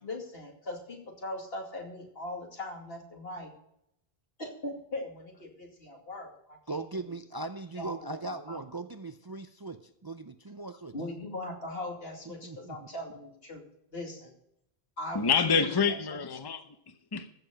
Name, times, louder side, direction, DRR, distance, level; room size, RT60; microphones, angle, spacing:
voice 1, 0.0-3.5 4.4-6.8 7.8-8.6 10.9-13.6 13.9-14.3 15.0-16.2, left 1 dB, 75° left, 1 dB, 2.8 m, -40 dB
voice 2, 6.7-10.9 12.4-12.8, right 3 dB, 30° right, 8 dB, 0.5 m, -39 dB
voice 3, 15.1-17.3, left 6 dB, 25° left, 9 dB, 0.8 m, -28 dB
14.5 x 7.0 x 5.2 m, 0.76 s
omnidirectional pair, 1.0 m